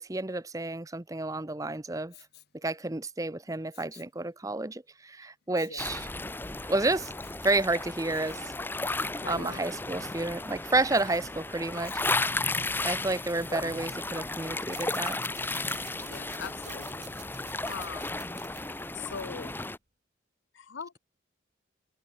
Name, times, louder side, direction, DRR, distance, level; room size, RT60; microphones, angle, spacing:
voice 1, 0.0-2.1 2.6-6.1 6.7-7.1 7.4-8.5 9.3-12.0 12.8-15.2, right 2 dB, 15° right, 0.7 m, -30 dB
Respiratory sounds, 2.1-2.6 3.7-4.2 5.5-6.0 7.0-7.4 8.1-8.5 10.9-11.3 11.8-12.4 13.5-13.9 14.4-14.5, left 7 dB, 55° left, 2.5 m, -52 dB
sound 1, 5.8-19.8, left 2 dB, 10° left, 0.9 m, -34 dB
voice 2, 9.2-9.7 16.0-17.1 17.6-18.2 18.9-19.5 20.5-21.0, left 6 dB, 70° left, 0.7 m, -41 dB
sound 2, 14.7-19.7, right 12 dB, 35° right, 4.3 m, -51 dB
open air
head